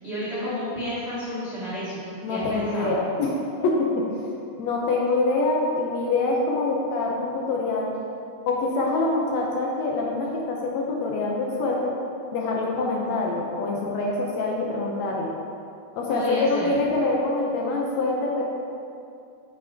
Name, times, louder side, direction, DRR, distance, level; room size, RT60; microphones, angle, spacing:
voice 1, 0.0-3.0 16.1-16.7, left 1 dB, 40° right, -11 dB, 0.9 m, -31 dB
voice 2, 2.2-4.2 4.6-7.9 8.5-12.0 12.3-15.3 16.0-18.4, left 2 dB, 75° left, -1 dB, 1.8 m, -25 dB
8.7 x 5.3 x 3.4 m, 2.5 s
omnidirectional pair, 3.5 m